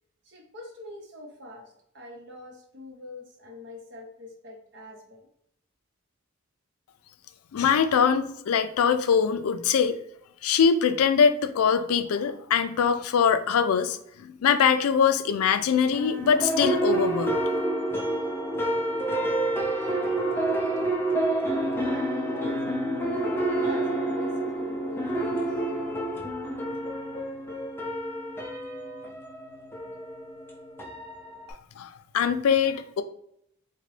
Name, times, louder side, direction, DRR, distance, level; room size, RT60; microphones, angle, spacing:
voice 1, 0.2-5.3 19.7-21.0 21.4-22.6 23.2-25.2 25.5-25.6, left 1 dB, 55° right, 1 dB, 0.8 m, -44 dB
voice 2, 7.5-10.0 10.4-17.4 31.8-33.0, left 7 dB, 85° left, 11 dB, 0.3 m, -23 dB
sound 1, 15.9-31.5, right 1 dB, 10° left, 0.4 m, -28 dB
3.8 x 2.2 x 3.1 m, 0.73 s
head